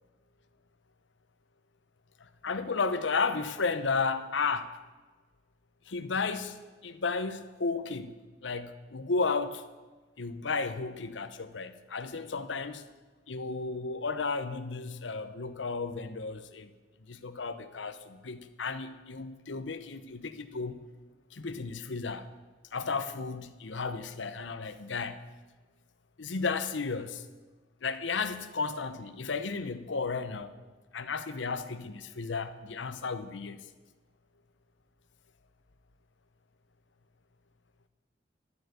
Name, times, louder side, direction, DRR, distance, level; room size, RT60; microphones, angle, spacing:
voice 1, 2.2-4.7 5.9-8.1 8.4-9.6 10.2-12.8 13.3-16.7 17.1-20.8 21.3-22.3 22.7-25.2 26.2-27.2 27.8-30.5 30.9-33.6, left 4 dB, 90° left, 12 dB, 0.8 m, -33 dB
11.5 x 7.9 x 8.2 m, 1.3 s
head